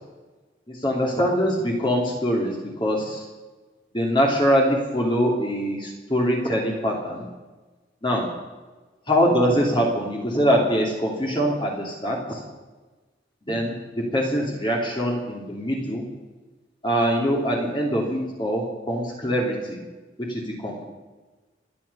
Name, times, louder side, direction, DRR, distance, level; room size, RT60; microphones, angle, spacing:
voice 1, 0.7-3.3 3.9-7.3 8.0-8.3 9.1-12.4 13.5-16.0 16.8-19.8 20.2-20.8, equal, 25° left, -1 dB, 2.9 m, -23 dB
27.0 x 9.5 x 5.6 m, 1.3 s
head